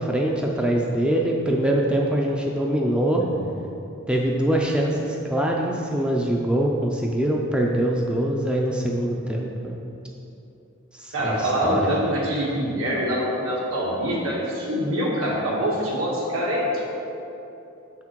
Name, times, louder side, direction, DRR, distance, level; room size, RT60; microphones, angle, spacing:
voice 1, 0.0-3.2 4.1-9.8 10.9-11.9, right 1 dB, 5° right, -1 dB, 0.4 m, -23 dB
voice 2, 11.1-16.7, equal, 75° right, -4 dB, 1.7 m, -25 dB
6.5 x 5.9 x 4.5 m, 2.8 s
head